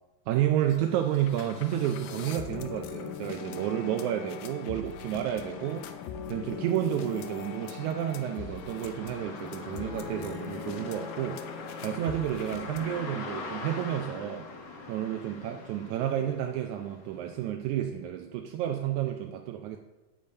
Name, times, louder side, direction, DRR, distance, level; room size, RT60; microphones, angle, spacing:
voice 1, 0.3-5.9 6.3-11.5 11.8-14.5 14.9-19.8, right 11 dB, 80° right, 4 dB, 1.8 m, -31 dB
sound 1, 0.7-0.8 1.1-13.0, left 8 dB, 85° left, 2.4 m, -41 dB
sound 2, 5.1-17.5, left 3 dB, 65° left, 2.8 m, -44 dB
8.7 x 8.7 x 5.4 m, 1.1 s
omnidirectional pair, 3.8 m